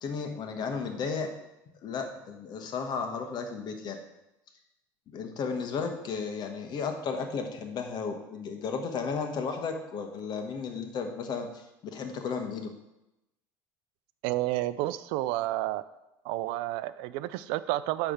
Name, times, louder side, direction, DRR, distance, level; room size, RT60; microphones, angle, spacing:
voice 1, 0.0-1.3 1.8-4.0 5.1-12.7, left 5 dB, 50° left, 5 dB, 1.4 m, -34 dB
voice 2, 14.2-15.8 16.2-18.1, right 16 dB, 70° right, 15 dB, 0.4 m, -30 dB
9.9 x 3.4 x 6.4 m, 0.93 s
supercardioid pair, 90°, 9 cm